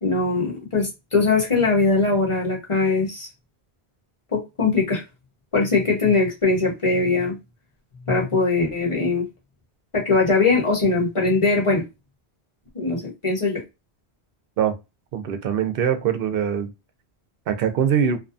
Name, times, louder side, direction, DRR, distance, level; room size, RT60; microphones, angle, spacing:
voice 1, 0.0-3.3 4.3-5.0 5.5-7.4 8.1-9.2 9.9-11.8 12.7-13.6, left 3 dB, 30° left, 1.0 m, -21 dB
voice 2, 15.1-16.7 17.5-18.2, right 8 dB, 65° right, 0.7 m, -22 dB
2.6 x 2.2 x 2.5 m
omnidirectional pair, 1.1 m